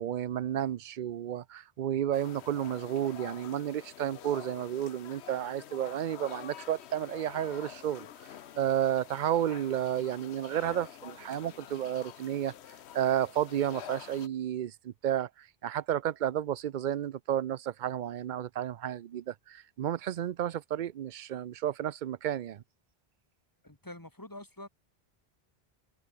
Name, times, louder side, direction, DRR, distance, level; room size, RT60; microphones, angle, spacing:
voice 1, 0.0-8.1 8.6-12.5 12.9-22.6, right 10 dB, 55° right, 0.6 m, -32 dB
sound 1, 2.1-14.3, left 10 dB, 90° left, 1.0 m, -48 dB
voice 2, 23.6-24.7, left 1 dB, 20° left, 3.0 m, -46 dB
omnidirectional pair, 1.1 m